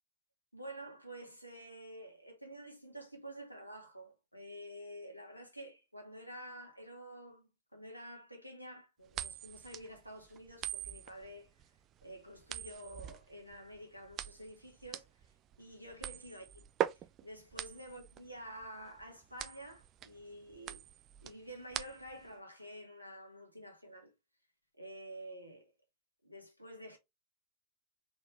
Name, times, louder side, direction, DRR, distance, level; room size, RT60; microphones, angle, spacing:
voice 1, 0.5-11.5 12.0-15.1 15.6-16.4 16.9-20.8 21.2-24.1 24.8-25.7 26.2-27.0, right 1 dB, 90° right, 1.3 m, -49 dB
sound 1, 9.1-22.3, right 11 dB, 35° right, 0.5 m, -42 dB
4.4 x 3.8 x 3.1 m
figure-of-eight pair, 90°, 0 cm